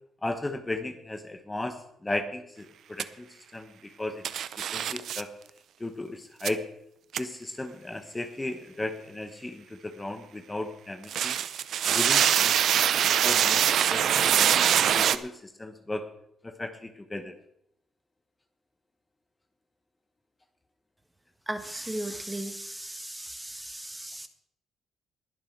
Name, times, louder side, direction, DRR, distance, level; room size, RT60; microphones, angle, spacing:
voice 1, 0.2-3.3 3.5-4.2 4.6-5.3 5.8-6.6 7.2-11.4 11.9-16.0 16.4-17.3, left 2 dB, 15° left, 8 dB, 1.1 m, -36 dB
sound 1, 3.0-3.1 4.2-5.2 6.4-6.5 7.1-7.2 11.0-15.2, right 9 dB, 70° right, 0.6 m, -23 dB
voice 2, 21.5-24.3, right 1 dB, 10° right, 8 dB, 1.4 m, -36 dB
20.5 x 7.0 x 4.6 m, 0.75 s
cardioid pair, 90°, 0 cm